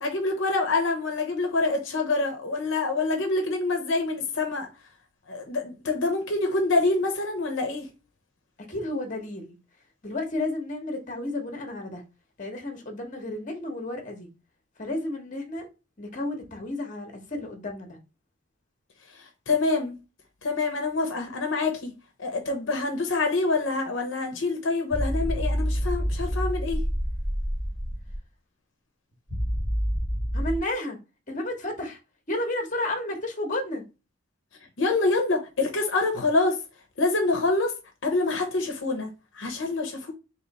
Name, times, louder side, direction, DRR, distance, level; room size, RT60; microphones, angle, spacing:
voice 1, 0.0-4.7 5.3-7.9 19.2-20.0 20.4-21.9 22.2-26.8 34.8-36.6 37.0-37.7 38.0-39.1 39.3-40.1, left 3 dB, 70° left, 0.7 m, -26 dB
voice 2, 8.7-9.6 10.0-12.0 12.4-14.3 14.8-15.7 16.0-18.0 30.3-31.0 31.3-32.0 32.3-33.8, left 1 dB, 40° left, 0.9 m, -32 dB
sound 1, 24.9-28.2 29.3-30.6, equal, 10° right, 1.0 m, -27 dB
3.1 x 2.9 x 4.0 m
head